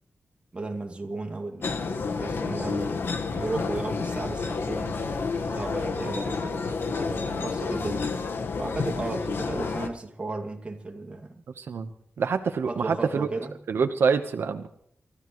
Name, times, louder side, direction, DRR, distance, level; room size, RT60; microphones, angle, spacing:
voice 1, 0.5-1.9 2.2-3.0 3.3-5.0 5.5-8.1 8.6-11.4 12.7-13.5, right 2 dB, 30° right, 2.3 m, -34 dB
sound 1, 1.6-9.9, left 4 dB, 70° left, 1.4 m, -30 dB
voice 2, 11.5-11.9 12.2-13.3 13.7-14.7, right 5 dB, 80° right, 1.0 m, -26 dB
29.5 x 14.5 x 3.1 m
wide cardioid pair, 120°, 4 cm